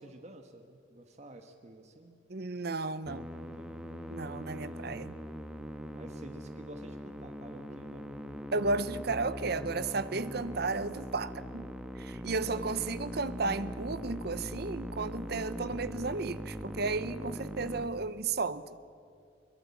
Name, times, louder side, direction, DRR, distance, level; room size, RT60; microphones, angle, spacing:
voice 1, 0.0-2.2 3.4-4.0 4.6-4.9 5.9-8.1 12.4-12.6, right 1 dB, 35° right, 6 dB, 1.3 m, -50 dB
voice 2, 2.3-3.4 4.1-5.2 8.5-11.7 12.0-18.7, right 3 dB, 55° right, 14 dB, 0.8 m, -33 dB
Musical instrument, 3.1-17.9, equal, 5° right, 1.2 m, -41 dB
22.5 x 21.0 x 8.3 m, 2.3 s
head